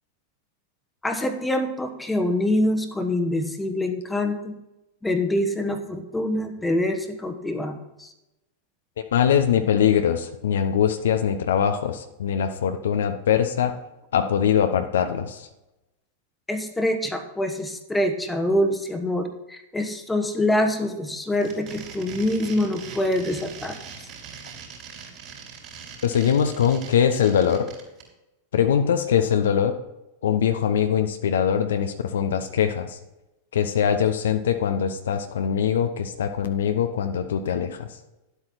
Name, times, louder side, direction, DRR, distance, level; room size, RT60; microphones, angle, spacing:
voice 1, 1.0-4.5 5.0-8.1 16.5-23.8, left 1 dB, 5° left, 6 dB, 1.2 m, -25 dB
voice 2, 9.1-13.7 14.1-15.5 26.0-27.7 28.5-29.7 30.2-33.0 33.5-37.9, left 8 dB, 60° left, 8 dB, 0.8 m, -22 dB
sound 1, 21.3-28.0, right 6 dB, 35° right, 4.0 m, -41 dB
11.5 x 8.2 x 4.3 m, 0.94 s
figure-of-eight pair, 90°, 0 cm